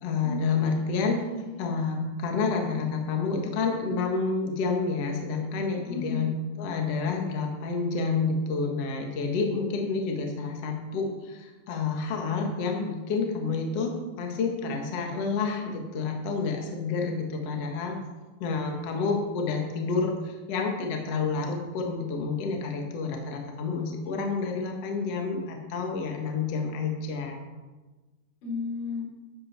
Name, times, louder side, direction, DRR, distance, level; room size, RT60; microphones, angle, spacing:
voice 1, 0.0-1.2 1.6-6.3 6.6-13.9 14.2-18.0 18.4-27.4, left 4 dB, 55° left, 2 dB, 1.8 m, -29 dB
voice 2, 1.3-1.7 5.8-6.3 28.4-29.1, left 4 dB, 75° left, -4 dB, 6.7 m, -34 dB
13.0 x 12.0 x 4.3 m, 1.2 s
omnidirectional pair, 5.2 m